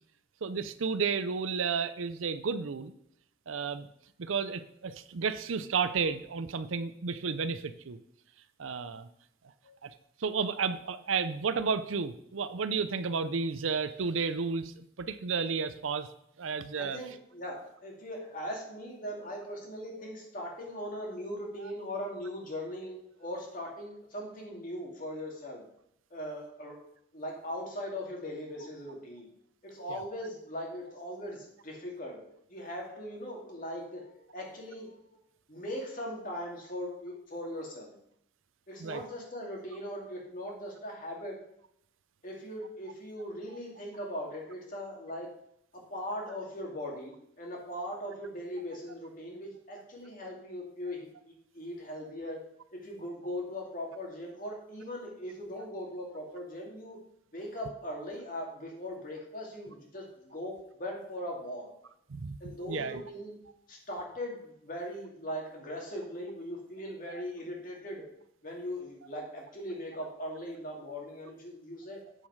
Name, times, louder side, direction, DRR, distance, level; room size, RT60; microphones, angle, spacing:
voice 1, 0.4-2.9 3.5-3.9 4.2-8.0 8.6-9.1 9.8-9.9 10.2-16.1 16.4-17.0 29.9-30.0 38.8-39.0 62.1-62.4 62.7-63.0, right 5 dB, 80° right, 13 dB, 0.6 m, -32 dB
voice 2, 16.7-25.6 26.1-26.8 27.1-29.3 29.6-35.0 35.5-37.9 38.7-41.4 42.2-45.3 45.7-52.4 52.7-57.0 57.3-61.7 62.4-63.4 63.7-68.0 68.4-72.0, equal, 40° left, -1 dB, 2.4 m, -40 dB
8.3 x 7.2 x 4.8 m, 0.74 s
head